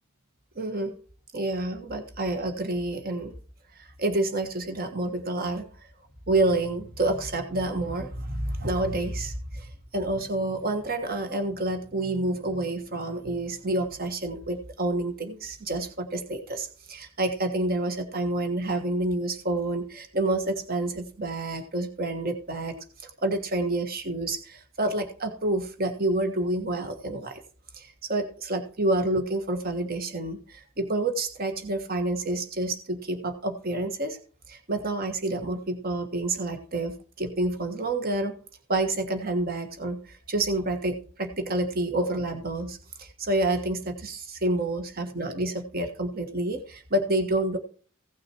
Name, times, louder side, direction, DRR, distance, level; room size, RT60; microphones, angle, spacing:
voice 1, 0.5-0.9 1.3-3.3 3.8-5.6 6.3-27.4 27.7-34.2 34.5-38.3 38.7-47.6, right 2 dB, 45° right, 6 dB, 1.4 m, -28 dB
16.5 x 6.2 x 4.5 m, 0.42 s
head